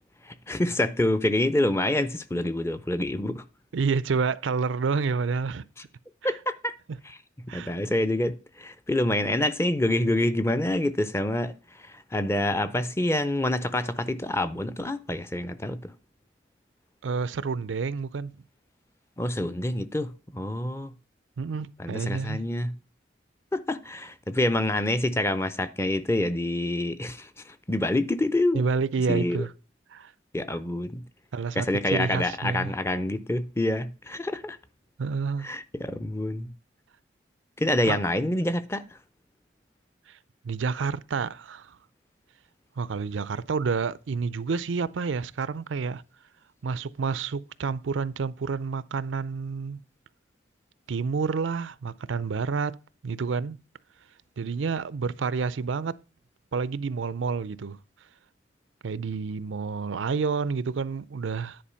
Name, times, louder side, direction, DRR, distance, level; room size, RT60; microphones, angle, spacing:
voice 1, 0.2-3.4 6.2-6.7 7.0-7.2 7.5-15.9 19.2-20.9 21.8-22.8 23.5-28.6 29.1-29.4 30.3-31.1 31.5-34.6 35.4-36.5 37.6-39.0, left 1 dB, 15° left, 0.5 m, -27 dB
voice 2, 3.7-5.7 6.2-6.3 7.5-7.7 17.0-18.3 21.4-22.4 28.5-29.5 29.9-30.1 31.3-32.7 35.0-35.5 37.9-38.0 40.1-40.2 40.4-41.8 42.8-46.0 46.6-49.8 50.9-52.8 53.0-53.6 54.4-56.0 56.5-57.8 58.8-61.6, right 5 dB, 80° right, 0.5 m, -29 dB
10.0 x 4.5 x 5.6 m
head